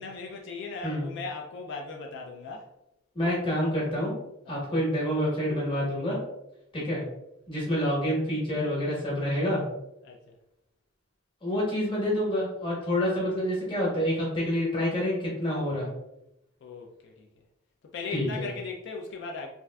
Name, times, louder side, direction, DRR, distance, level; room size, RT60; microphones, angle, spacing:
voice 1, 0.0-2.7 4.5-4.6 6.8-6.9 10.0-10.4 16.6-17.3 17.8-19.5, left 4 dB, 60° left, 1 dB, 0.3 m, -38 dB
voice 2, 3.1-4.1 4.5-6.2 6.7-7.0 7.5-9.6 11.4-15.9 18.1-18.5, equal, 25° left, -5 dB, 1.0 m, -27 dB
3.4 x 2.5 x 2.2 m, 0.85 s
head